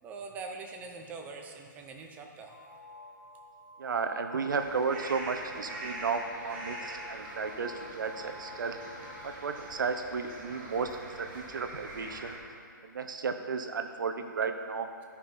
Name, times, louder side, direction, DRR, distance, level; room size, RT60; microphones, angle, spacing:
voice 1, 0.0-2.6, right 4 dB, 15° right, 3 dB, 0.7 m, -43 dB
sound 1, 2.5-10.0, left 3 dB, 70° left, 1.1 m, -49 dB
voice 2, 3.8-8.8 9.2-12.4 12.8-14.9, right 5 dB, 70° right, 7 dB, 0.8 m, -33 dB
sound 2, 4.5-12.4, right 2 dB, 30° right, 1.8 m, -44 dB
13.0 x 5.6 x 4.3 m, 2.3 s
hypercardioid pair, 155°, 11 cm